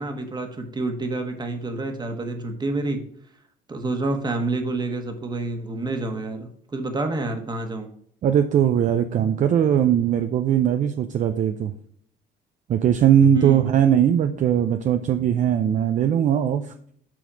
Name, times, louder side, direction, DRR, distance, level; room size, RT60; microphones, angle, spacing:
voice 1, 0.0-3.0 3.7-7.9 13.3-13.7, right 2 dB, 25° right, 5 dB, 1.3 m, -28 dB
voice 2, 8.2-11.7 12.7-16.7, right 9 dB, 45° right, 8 dB, 0.5 m, -20 dB
7.5 x 4.1 x 5.1 m, 0.63 s
cardioid pair, 110°, 17 cm